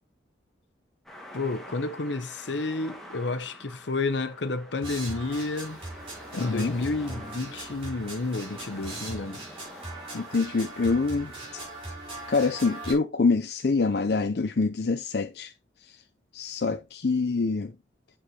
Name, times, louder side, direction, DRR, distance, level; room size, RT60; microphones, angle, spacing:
sound 1, 1.1-11.7, equal, ahead, 1.7 m, -47 dB
voice 1, 1.3-5.8 6.4-9.4, left 3 dB, 80° left, 0.9 m, -30 dB
sound 2, 4.8-12.9, right 2 dB, 30° right, 5.9 m, -40 dB
voice 2, 6.3-6.7 10.1-11.6 12.3-15.5 15.8-16.0 16.3-17.7, left 4 dB, 60° left, 0.5 m, -26 dB
8.6 x 7.1 x 2.9 m
head